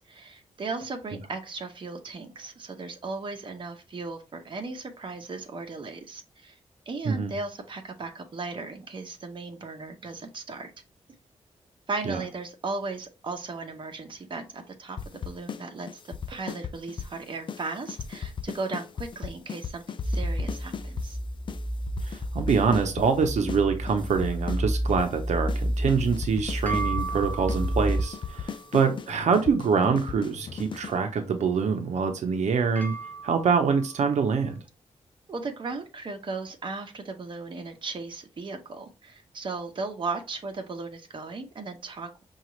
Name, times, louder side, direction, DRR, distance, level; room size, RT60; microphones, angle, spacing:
voice 1, 0.1-6.6 6.9-10.7 11.9-21.2 35.3-42.1, right 3 dB, 45° right, 4 dB, 0.8 m, -36 dB
sound 1, 15.0-15.6 15.9-17.2 17.5-17.6 17.9-21.1 21.5-21.6 21.9-23.6 23.9-25.2 25.5-25.6 25.9-31.0, left 7 dB, 45° left, 0.4 m, -36 dB
sound 2, 20.0-28.0, equal, 10° right, 2.4 m, -30 dB
voice 2, 22.0-32.9 33.2-34.6, right 5 dB, 80° right, 6 dB, 0.7 m, -25 dB
sound 3, 26.0-34.5, right 4 dB, 15° left, 0.7 m, -40 dB
5.7 x 2.4 x 3.0 m, 0.29 s
wide cardioid pair, 100°, 12 cm